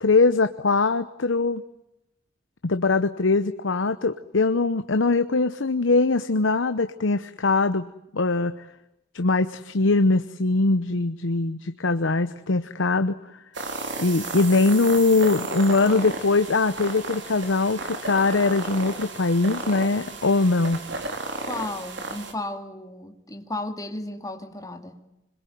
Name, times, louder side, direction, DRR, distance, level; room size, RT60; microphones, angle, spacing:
voice 1, 0.0-1.6 2.6-7.9 8.1-8.6 9.1-13.2 14.0-20.8, left 3 dB, 80° left, 10 dB, 0.9 m, -22 dB
sound 1, 13.5-22.3, right 3 dB, 65° right, 3.9 m, -34 dB
voice 2, 21.4-25.0, left 2 dB, 20° left, 5 dB, 2.5 m, -34 dB
26.0 x 21.5 x 9.3 m, 0.88 s
head